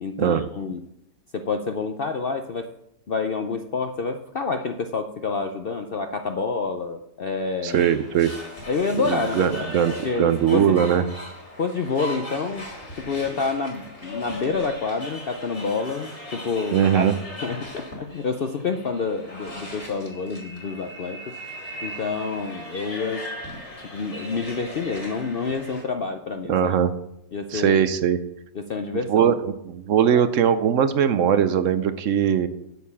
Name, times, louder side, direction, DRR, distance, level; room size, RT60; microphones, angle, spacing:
voice 1, 0.0-0.8 1.3-2.7 3.1-7.9 8.7-10.8 11.6-12.7 12.9-17.1 17.4-21.2 21.8-23.2 23.9-26.5 27.3-27.8 28.5-29.3 30.1-30.3, left 4 dB, 60° left, 6 dB, 0.6 m, -28 dB
voice 2, 7.6-8.3 9.0-11.0 16.7-17.1 26.5-26.9 27.5-28.2 29.1-32.5, right 8 dB, 65° right, 12 dB, 0.8 m, -20 dB
sound 1, 7.7-25.8, left 1 dB, 45° left, 3.1 m, -38 dB
8.2 x 6.6 x 7.1 m, 0.80 s
omnidirectional pair, 1.7 m